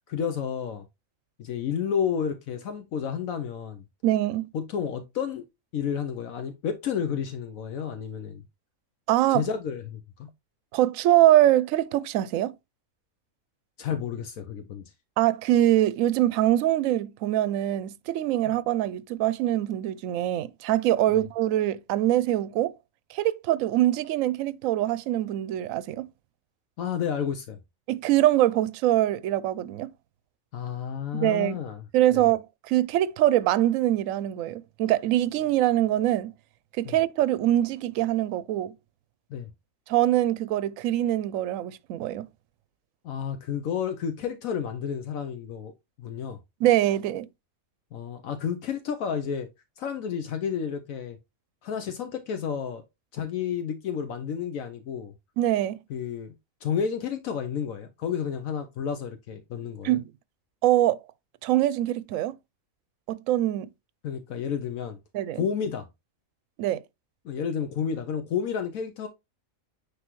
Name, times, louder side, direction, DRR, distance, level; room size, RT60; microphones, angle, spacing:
voice 1, 0.1-0.8 1.4-3.8 4.5-5.5 5.7-8.4 9.3-10.3 13.8-14.8 26.8-27.6 30.5-31.8 32.1-32.2 36.8-37.0 39.3-39.5 43.0-45.7 46.0-46.4 47.9-49.5 49.8-51.2 51.6-52.8 53.1-55.1 55.9-56.3 56.6-60.0 64.0-65.0 65.3-65.9 67.2-69.1, left 7 dB, 75° left, 1.1 m, -31 dB
voice 2, 4.0-4.5 9.1-9.4 10.7-12.5 15.2-22.7 23.1-26.1 27.9-29.9 31.1-31.6 31.9-36.3 36.8-38.7 39.9-42.3 46.6-47.3 55.4-55.8 59.8-60.0 60.6-61.0 61.4-62.4 63.1-63.7 65.1-65.4 66.6-66.8, right 13 dB, 75° right, 0.9 m, -23 dB
9.4 x 3.4 x 3.0 m
omnidirectional pair, 1.5 m